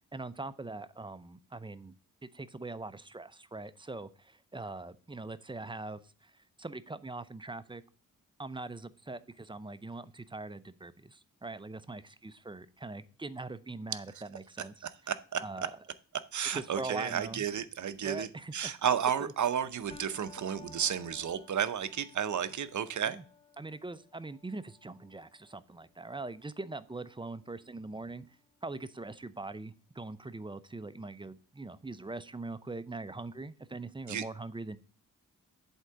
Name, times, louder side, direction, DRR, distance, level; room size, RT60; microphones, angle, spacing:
voice 1, 0.1-1.9 2.2-7.8 8.4-14.9 15.4-15.7 16.5-17.4 18.0-18.7 19.2-19.3 23.1-23.2 23.6-28.3 28.6-34.8, right 2 dB, 15° right, 0.5 m, -42 dB
voice 2, 14.8-15.7 16.3-23.2 34.1-34.2, right 8 dB, 55° right, 0.7 m, -32 dB
sound 1, 19.9-28.9, left 4 dB, 15° left, 1.1 m, -58 dB
8.1 x 3.7 x 6.7 m
cardioid pair, 75°, 34 cm